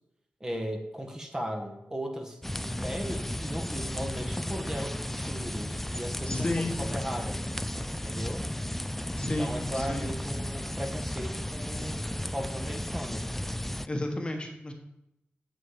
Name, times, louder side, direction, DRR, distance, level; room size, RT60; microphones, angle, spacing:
voice 1, 0.4-7.4 7.8-8.5 9.4-13.3, equal, 15° right, 3 dB, 1.6 m, -37 dB
sound 1, 2.4-13.9, left 1 dB, 5° left, 0.4 m, -34 dB
voice 2, 6.3-6.8 9.2-10.1 13.9-14.7, left 1 dB, 25° left, 3 dB, 1.4 m, -32 dB
7.7 x 7.5 x 8.1 m, 0.87 s
wide cardioid pair, 115°, 4 cm